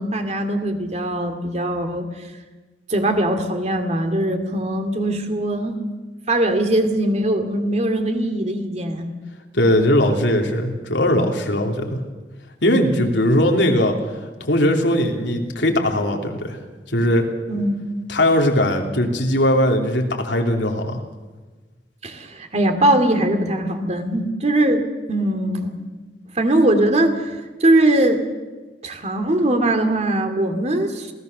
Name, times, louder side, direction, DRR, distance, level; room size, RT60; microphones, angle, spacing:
voice 1, 0.0-2.1 2.9-5.8 6.3-9.1 17.5-17.8 22.0-25.8 26.4-28.2 28.8-31.1, right 1 dB, 40° right, 7 dB, 2.4 m, -21 dB
voice 2, 9.5-12.0 12.6-16.6 16.9-17.3 18.1-21.0, left 1 dB, 80° left, 2 dB, 3.0 m, -19 dB
27.0 x 17.5 x 6.7 m, 1.3 s
head